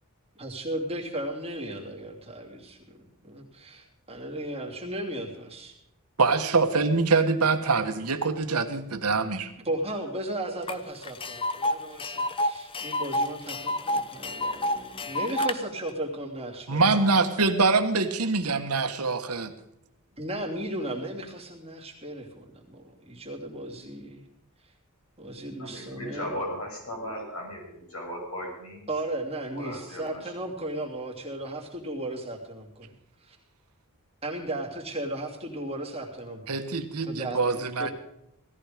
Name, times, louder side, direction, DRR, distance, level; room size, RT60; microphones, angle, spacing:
voice 1, 0.4-5.8 9.6-16.9 20.2-24.2 25.2-26.4 28.9-32.9 33.2-33.4 34.2-36.6 37.0-37.9, right 1 dB, 25° right, 0 dB, 2.8 m, -35 dB
voice 2, 6.2-9.5 16.7-19.5 36.5-37.9, right 4 dB, 90° right, 7 dB, 1.4 m, -24 dB
Tick, 10.7-10.8 11.0-15.5, left 1 dB, 25° left, 0.7 m, -29 dB
voice 3, 25.6-28.9 29.5-30.3, equal, 70° left, -1 dB, 6.7 m, -37 dB
17.5 x 14.0 x 5.1 m, 0.82 s
head